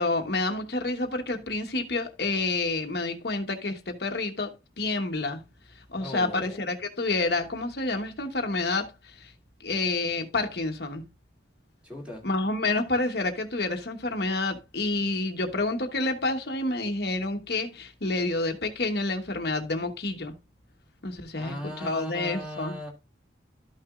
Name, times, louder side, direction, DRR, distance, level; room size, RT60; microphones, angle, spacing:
voice 1, 0.0-5.4 5.9-9.3 9.6-11.0 12.2-20.3 21.0-22.7, left 2 dB, 60° left, 1.1 m, -29 dB
voice 2, 6.0-6.7 11.8-12.3 21.4-22.9, left 1 dB, 5° right, 2.5 m, -38 dB
13.0 x 6.0 x 2.4 m
head